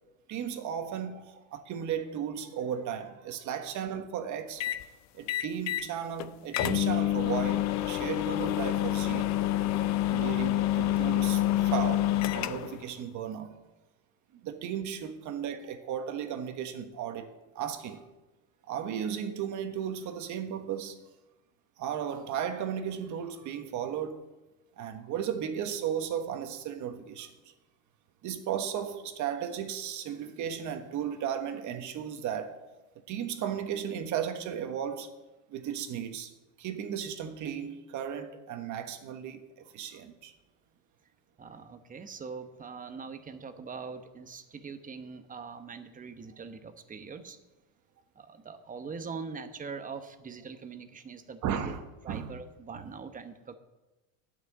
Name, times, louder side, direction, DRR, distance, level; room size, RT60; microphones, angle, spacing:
voice 1, 0.3-4.6 5.1-9.4 10.1-13.6 14.4-18.0 18.7-21.0 21.8-24.3 24.8-27.3 28.2-32.6 33.1-35.1 35.5-36.3 36.6-40.3 51.4-52.4, right 8 dB, 50° right, 1.4 m, -35 dB
sound 1, 4.6-4.8 5.3-5.9 6.2-6.3 6.5-12.8, left 14 dB, 45° left, 0.6 m, -27 dB
voice 2, 41.4-47.4 48.2-51.7 52.0-53.6, right 5 dB, 20° right, 1.0 m, -42 dB
10.5 x 6.1 x 8.3 m
supercardioid pair, 120°, 39 cm